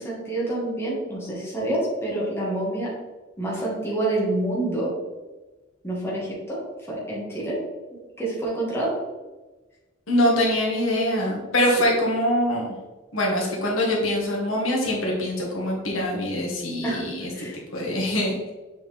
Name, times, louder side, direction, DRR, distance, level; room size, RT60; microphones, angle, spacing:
voice 1, 0.0-2.9 3.4-4.9 5.8-6.6 6.9-7.6 7.9-8.9 16.8-17.0 17.3-17.6, right 1 dB, 10° left, -6 dB, 1.9 m, -27 dB
voice 2, 10.1-12.7 13.1-18.5, left 1 dB, 80° left, -3 dB, 1.8 m, -24 dB
7.4 x 4.3 x 3.5 m, 1.2 s
head